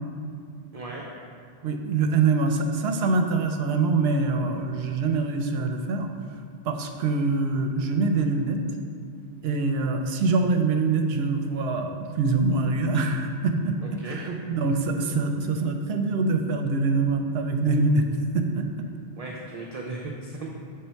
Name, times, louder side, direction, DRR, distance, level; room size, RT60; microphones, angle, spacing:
voice 1, 0.7-1.0 13.8-14.4 19.2-20.5, right 3 dB, 45° right, -2 dB, 0.5 m, -36 dB
voice 2, 1.6-6.1 6.6-8.6 9.4-18.1 18.3-18.7, right 3 dB, 75° right, 5 dB, 0.8 m, -24 dB
6.8 x 3.5 x 4.4 m, 2.3 s
omnidirectional pair, 1.1 m